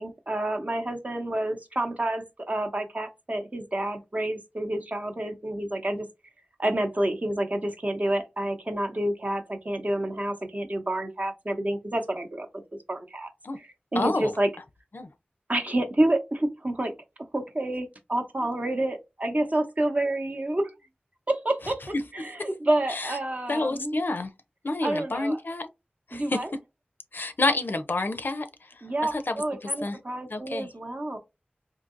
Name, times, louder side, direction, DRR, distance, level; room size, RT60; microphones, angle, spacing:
voice 1, 0.0-6.1 6.6-12.5 12.9-13.3 13.6-14.5 15.5-16.9 17.3-20.7 21.3-21.8 22.1-24.0 24.8-25.4 26.1-26.5 28.8-31.2, right 1 dB, 40° right, 0.8 m, -28 dB
voice 2, 14.0-14.3 14.9-15.1 22.9-23.2 23.5-24.3 24.6-25.7 26.1-26.4 27.1-28.5 29.0-30.0 30.3-30.7, left 2 dB, 65° left, 0.5 m, -28 dB
3.8 x 2.7 x 2.5 m
wide cardioid pair, 65°, 4 cm